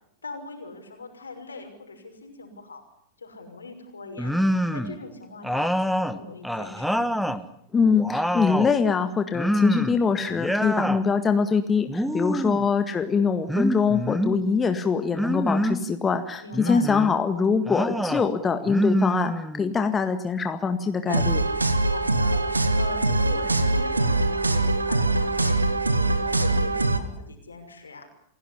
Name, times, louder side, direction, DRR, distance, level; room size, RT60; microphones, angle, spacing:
voice 1, 0.2-2.8 3.2-4.3 4.7-7.2 12.1-12.5 16.4-16.8 21.7-25.6 25.9-28.1, left 3 dB, 75° left, 5 dB, 6.1 m, -40 dB
sound 1, 4.2-5.0 5.4-7.4 7.8-8.8 9.3-10.0 10.3-11.0 11.9-12.7 13.5-14.4 15.1-15.9 16.5-17.1 17.7-18.3 18.7-19.8, equal, ahead, 1.5 m, -26 dB
voice 2, 7.7-21.4, left 5 dB, 20° left, 8 dB, 1.8 m, -23 dB
sound 2, 21.1-27.0, right 2 dB, 80° right, 1.8 m, -23 dB
28.0 x 17.5 x 9.9 m, 0.73 s
figure-of-eight pair, 90°, 0 cm